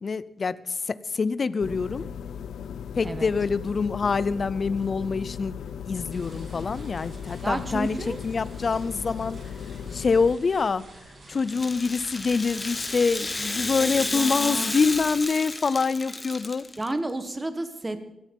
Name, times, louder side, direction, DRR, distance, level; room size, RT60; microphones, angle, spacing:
voice 1, 0.0-2.1 3.0-5.5 5.9-9.4 9.9-10.8 11.3-16.7, left 4 dB, 35° left, 17 dB, 0.5 m, -26 dB
sound 1, 1.6-10.4, left 8 dB, 80° left, 0.7 m, -37 dB
sound 2, 6.1-15.2, right 2 dB, 40° right, 3.1 m, -48 dB
voice 2, 7.4-8.2 13.8-14.8 16.8-18.0, right 2 dB, 15° right, 10 dB, 1.3 m, -31 dB
Rattle (instrument), 11.4-16.9, left 2 dB, 15° left, 1.2 m, -32 dB
17.0 x 14.0 x 5.4 m, 0.94 s
wide cardioid pair, 155°, 0 cm